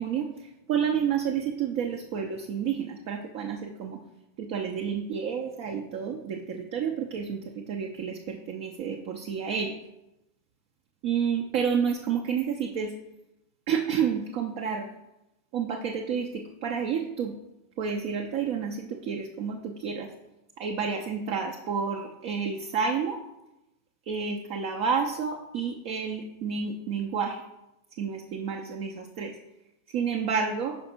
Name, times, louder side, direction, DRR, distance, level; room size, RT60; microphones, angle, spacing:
voice 1, 0.0-4.0 4.4-9.8 11.0-12.9 13.7-14.9 15.5-17.3 17.8-20.1 20.6-23.2 24.1-27.4 28.0-29.3 29.9-30.8, right 6 dB, 45° right, 3 dB, 0.6 m, -30 dB
5.7 x 5.1 x 4.3 m, 0.91 s
figure-of-eight pair, 90°, 0 cm